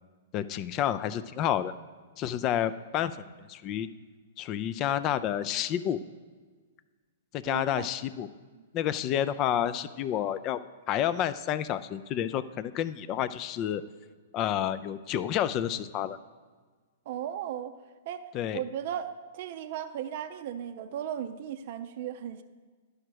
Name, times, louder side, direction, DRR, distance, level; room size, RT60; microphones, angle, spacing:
voice 1, 0.3-1.7 2.2-3.9 4.4-6.0 7.3-8.3 8.7-10.6 10.9-13.8 14.3-16.2 18.3-18.6, left 10 dB, 35° left, 15 dB, 0.4 m, -29 dB
voice 2, 7.5-7.9 8.5-8.6 17.1-17.7 18.1-18.3 18.5-22.4, right 10 dB, 55° right, 8 dB, 0.5 m, -36 dB
11.5 x 5.0 x 4.6 m, 1.5 s
hypercardioid pair, 120°, 0 cm